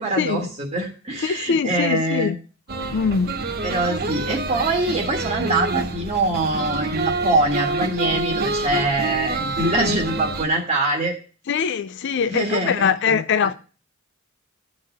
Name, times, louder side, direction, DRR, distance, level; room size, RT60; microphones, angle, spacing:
voice 1, 0.0-2.3 3.6-11.1 12.3-13.2, right 2 dB, 30° right, 1.8 m, -23 dB
voice 2, 1.2-2.4 2.9-3.4 11.5-13.5, left 6 dB, 60° left, 0.4 m, -22 dB
sound 1, 2.7-10.4, right 2 dB, 50° right, 1.1 m, -27 dB
11.5 x 4.2 x 6.0 m
head